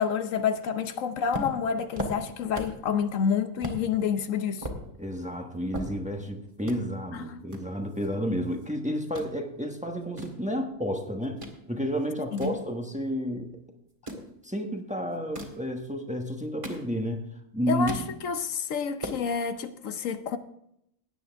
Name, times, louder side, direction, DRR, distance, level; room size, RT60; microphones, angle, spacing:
voice 1, 0.0-4.7 7.1-7.5 12.3-12.6 17.7-20.4, left 7 dB, 80° left, 1.2 m, -29 dB
sound 1, 1.3-2.9 3.2-3.3 3.6-3.8 4.3-6.3 6.6-6.8 7.5-8.7 8.9-9.3 9.9-11.6 12.0-13.3 13.9-14.3 15.1-15.6 16.3-17.2 17.6-18.1 18.5-18.6 18.8-19.2, equal, 25° right, 1.9 m, -38 dB
voice 2, 5.0-11.4 11.7-13.5 14.1-17.2 17.5-18.1, equal, 5° right, 1.1 m, -31 dB
16.5 x 9.7 x 3.5 m
omnidirectional pair, 1.3 m